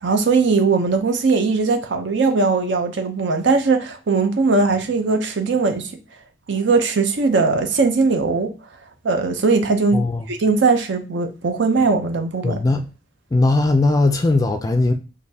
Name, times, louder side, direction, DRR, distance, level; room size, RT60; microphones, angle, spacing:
voice 1, 0.0-5.9 6.5-8.5 9.0-12.6, right 4 dB, 70° right, 0.6 m, -19 dB
voice 2, 9.9-10.3 12.4-12.8 13.3-14.9, left 2 dB, 20° left, 0.3 m, -18 dB
6.4 x 2.6 x 2.7 m
head